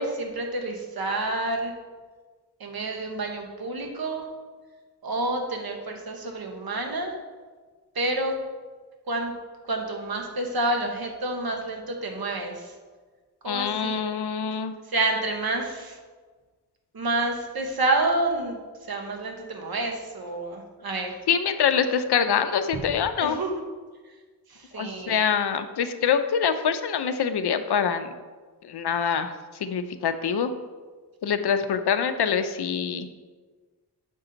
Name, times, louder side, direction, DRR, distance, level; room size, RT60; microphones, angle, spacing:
voice 1, 0.0-1.7 2.6-4.3 5.0-7.1 7.9-8.3 9.1-9.3 9.6-12.7 13.4-14.0 14.9-16.0 16.9-18.6 18.9-21.2 23.1-23.5 24.5-25.2, right 2 dB, 65° right, 2 dB, 1.1 m, -28 dB
voice 2, 13.4-14.7 21.3-23.4 24.8-28.1 28.6-29.3 29.6-30.5 31.2-33.1, left 7 dB, 75° left, 9 dB, 0.6 m, -25 dB
7.1 x 5.5 x 3.9 m, 1.4 s
wide cardioid pair, 105°, 40 cm